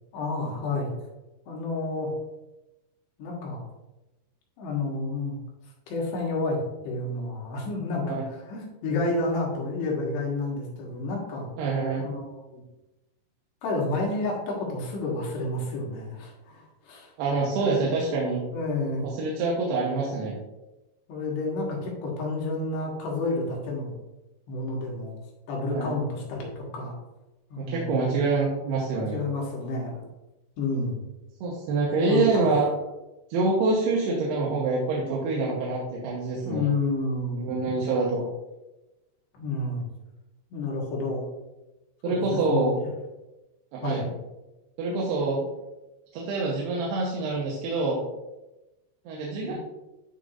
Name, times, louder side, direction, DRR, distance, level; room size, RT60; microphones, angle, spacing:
voice 1, 0.1-0.9 1.5-2.1 3.2-3.6 4.6-5.4 5.9-11.5 12.0-12.6 13.6-17.1 18.5-19.0 21.1-24.0 24.5-25.2 25.5-26.9 27.5-28.2 28.9-30.0 30.6-31.0 32.0-32.5 36.4-37.6 39.3-39.9 40.5-41.3 42.0-42.7 43.8-44.0 49.5-49.6, left 2 dB, 85° left, -2 dB, 3.7 m, -30 dB
voice 2, 11.6-12.1 17.2-18.4 19.0-20.4 25.7-25.9 27.6-29.2 31.4-32.7 33.3-36.7 37.4-38.3 42.0-42.8 43.7-44.1 44.8-45.4 46.1-48.1 49.1-49.5, right 3 dB, 80° right, -4 dB, 3.1 m, -26 dB
10.5 x 5.2 x 2.6 m, 1.0 s
omnidirectional pair, 4.7 m